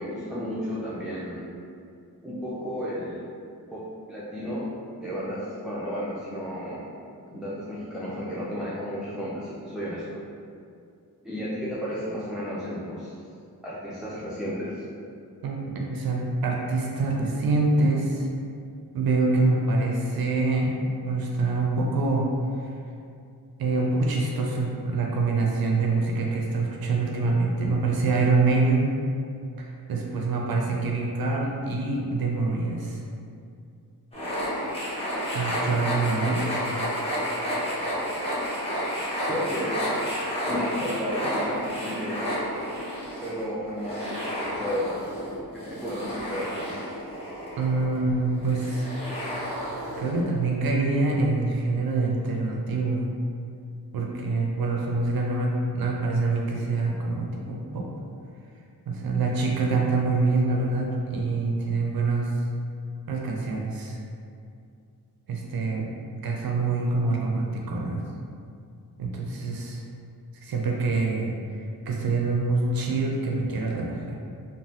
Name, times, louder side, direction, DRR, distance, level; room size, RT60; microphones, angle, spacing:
voice 1, 0.0-1.5 2.2-3.2 3.7-3.8 4.1-4.7 5.0-6.8 7.3-10.2 11.2-13.2 13.6-14.8 39.3-39.8 40.5-42.4 43.2-44.9 45.5-46.8, equal, ahead, -9 dB, 0.4 m, -33 dB
voice 2, 15.4-18.3 18.9-20.8 21.0-22.3 22.6-22.7 23.6-28.9 29.6-33.0 35.3-36.4 47.6-48.8 50.0-53.1 53.9-57.9 58.9-62.3 63.1-64.0 65.3-65.9 66.2-68.0 69.0-69.8 70.4-71.3 71.9-74.2, right 3 dB, 65° right, -1 dB, 0.5 m, -25 dB
sound 1, 34.1-50.5, equal, 15° left, 0.9 m, -31 dB
3.1 x 2.1 x 2.7 m, 2.4 s
cardioid pair, 65°, 39 cm